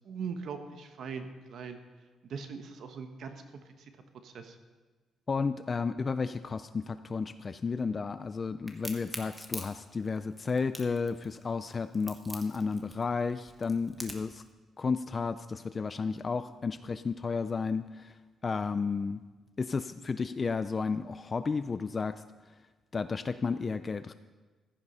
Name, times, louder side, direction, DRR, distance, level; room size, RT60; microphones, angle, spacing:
voice 1, 0.0-1.8 2.2-3.4 3.8-3.9 4.2-4.6, right 6 dB, 55° right, 7 dB, 1.2 m, -40 dB
voice 2, 5.3-14.4 14.8-18.1 18.4-19.2 19.6-22.2 22.9-24.1, left 4 dB, 25° left, 11 dB, 0.4 m, -32 dB
Crack, 8.7-14.4, right 1 dB, 10° right, 1.2 m, -43 dB
15.0 x 13.5 x 5.5 m, 1.3 s
cardioid pair, 180°, 0 cm